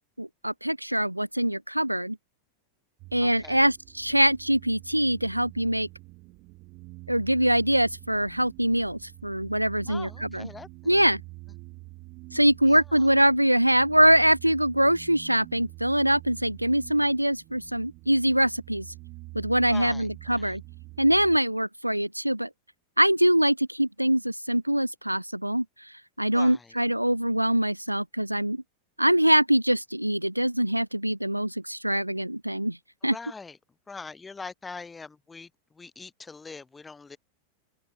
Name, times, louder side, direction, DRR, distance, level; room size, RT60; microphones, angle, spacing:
voice 1, 0.2-2.2 3.1-5.9 7.1-10.5 10.9-11.2 12.3-18.9 19.3-20.6 21.0-22.5 23.0-28.6 29.0-32.8 33.0-33.1, right 1 dB, 90° right, 0.6 m, -23 dB
sound 1, 3.0-21.4, right 23 dB, 40° right, 3.6 m, -46 dB
voice 2, 3.2-3.7 9.8-11.2 12.6-13.1 19.7-20.6 26.3-26.7 33.0-33.6 33.9-37.2, left 4 dB, 10° left, 5.9 m, -43 dB
open air
figure-of-eight pair, 90°, 0 cm